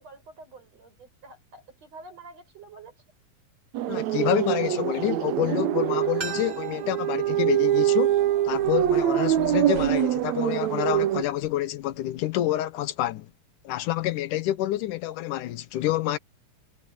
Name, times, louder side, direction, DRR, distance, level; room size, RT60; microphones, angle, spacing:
voice 1, 0.0-3.0, right 3 dB, 55° right, 8.4 m, -48 dB
sound 1, 3.7-11.2, right 12 dB, 70° right, 2.0 m, -24 dB
voice 2, 3.9-8.1 8.4-13.3 13.6-16.2, left 14 dB, 80° left, 2.4 m, -28 dB
sound 2, 6.2-9.0 9.3-9.4, right 5 dB, 15° right, 5.8 m, -42 dB
sound 3, 7.2-12.2, right 3 dB, 90° right, 8.3 m, -46 dB
omnidirectional pair, 3.6 m